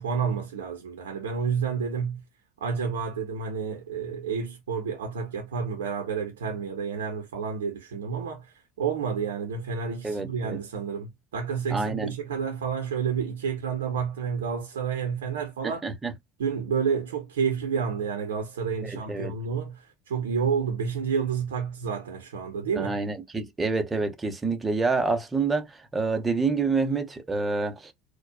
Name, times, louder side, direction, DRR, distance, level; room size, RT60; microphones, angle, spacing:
voice 1, 0.0-2.2 2.6-8.5 8.8-15.8 16.4-23.0, right 6 dB, 75° right, 0.8 m, -30 dB
voice 2, 10.0-10.6 11.7-12.1 15.6-16.1 18.8-19.3 22.8-27.9, right 4 dB, 20° right, 0.9 m, -27 dB
4.3 x 2.3 x 2.2 m
figure-of-eight pair, 70°, 0 cm